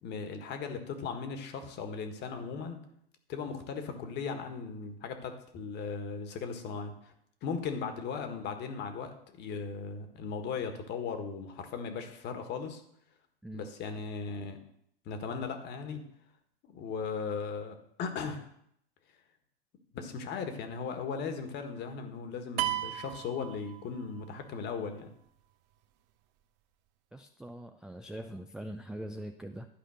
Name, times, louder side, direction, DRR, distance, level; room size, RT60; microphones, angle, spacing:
voice 1, 0.0-2.8 3.3-7.1 7.4-12.8 13.5-14.6 15.0-16.0 16.6-18.5 19.9-25.1, left 5 dB, 35° left, 6 dB, 1.6 m, -37 dB
sound 1, 22.6-24.3, right 14 dB, 50° right, 0.7 m, -34 dB
voice 2, 27.1-29.7, right 1 dB, ahead, 6 dB, 0.3 m, -42 dB
12.0 x 5.0 x 6.4 m, 0.72 s
hypercardioid pair, 100°, 29 cm